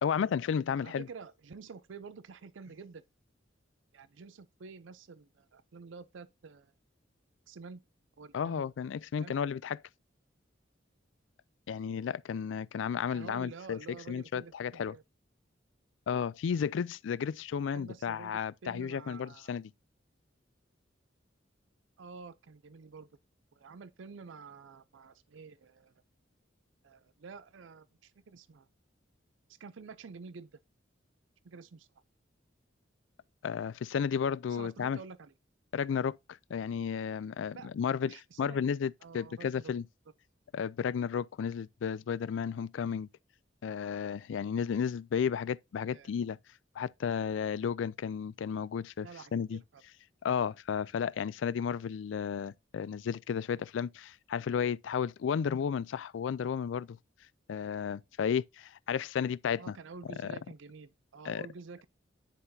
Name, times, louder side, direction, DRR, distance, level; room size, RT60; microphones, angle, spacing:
voice 1, 0.0-1.1 8.3-9.8 11.7-14.9 16.1-19.7 33.4-35.0 35.7-36.2 36.5-39.8 40.5-43.1 43.6-46.4 46.8-49.6 50.2-57.0 57.5-59.8 60.2-60.4 61.2-61.4, left 7 dB, 70° left, 0.3 m, -33 dB
voice 2, 0.8-3.0 3.9-6.7 7.5-7.8 8.2-8.7 9.2-9.4 13.1-15.0 17.7-19.6 22.0-23.1 23.5-25.9 26.8-28.7 29.6-30.5 31.4-31.9 34.5-35.3 37.5-37.7 38.0-38.7 39.0-39.7 45.9-46.1 49.0-49.8 59.6-61.9, right 4 dB, 75° right, 0.5 m, -49 dB
10.0 x 5.6 x 2.7 m
head